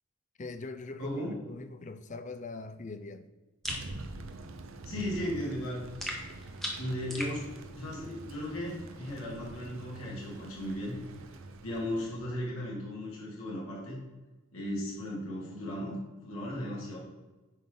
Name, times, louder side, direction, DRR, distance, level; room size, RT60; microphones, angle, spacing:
voice 1, 0.4-3.2, left 3 dB, 35° left, 0.5 m, -42 dB
voice 2, 1.0-1.3 4.9-5.9 6.8-7.5 7.7-11.0 11.6-14.0 14.5-17.0, left 1 dB, 85° left, 2.5 m, -36 dB
sound 1, 3.6-3.9 6.0-7.4, equal, ahead, 0.9 m, -37 dB
Thunder, 3.7-12.2, right 2 dB, 75° right, 0.6 m, -46 dB
9.2 x 5.2 x 3.9 m
head